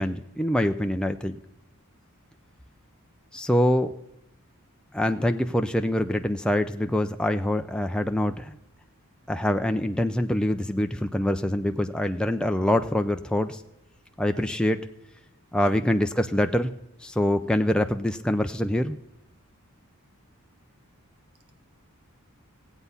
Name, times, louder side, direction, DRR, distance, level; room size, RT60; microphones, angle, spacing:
voice 1, 0.0-1.4 3.3-3.9 4.9-8.5 9.3-13.6 14.2-14.9 15.5-16.7 17.0-19.0, left 1 dB, 5° left, 0.4 m, -25 dB
voice 2, 14.3-14.8 15.6-16.1, right 3 dB, 75° right, 1.4 m, -47 dB
17.0 x 8.1 x 5.5 m
head